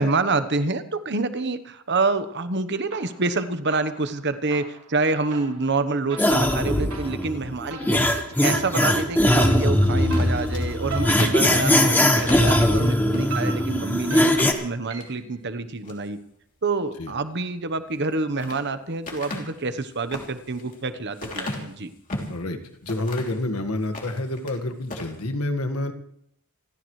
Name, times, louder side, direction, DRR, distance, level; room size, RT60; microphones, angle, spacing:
voice 1, 0.0-8.0 8.4-14.3 14.6-16.2 16.6-21.9, right 3 dB, 50° right, 11 dB, 1.1 m, -27 dB
sound 1, 2.9-3.4 3.7-15.3, right 4 dB, 90° right, 6.5 m, -40 dB
sound 2, 6.2-14.5, left 1 dB, 10° left, 1.4 m, -20 dB
sound 3, 10.0-12.5 13.1-13.3 13.6-13.7 14.2-15.1 15.6-16.1 17.9-18.6 19.0-22.4 22.9-23.4 23.8-24.6 24.8-25.1, left 2 dB, 40° left, 3.1 m, -36 dB
voice 2, 22.3-25.9, left 2 dB, 80° left, 7 dB, 1.8 m, -28 dB
27.5 x 14.5 x 3.3 m, 0.71 s
head